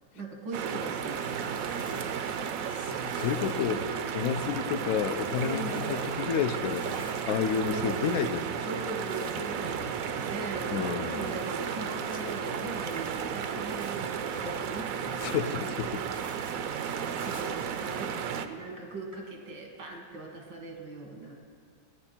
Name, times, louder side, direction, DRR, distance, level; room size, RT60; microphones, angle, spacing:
voice 1, 0.1-2.2 3.7-3.9 5.4-5.9 7.6-8.0 8.6-16.0 16.4-21.3, right 2 dB, 85° right, 2 dB, 2.2 m, -40 dB
sound 1, 0.5-18.5, right 8 dB, 70° right, 0.8 m, -34 dB
sound 2, 0.9-18.1, left 2 dB, 35° left, 0.6 m, -49 dB
voice 2, 2.8-3.8 4.1-6.8 7.3-8.5 10.7-11.4 15.2-16.0, left 8 dB, 70° left, 10 dB, 0.8 m, -30 dB
16.5 x 9.7 x 4.4 m, 2.2 s
omnidirectional pair, 2.0 m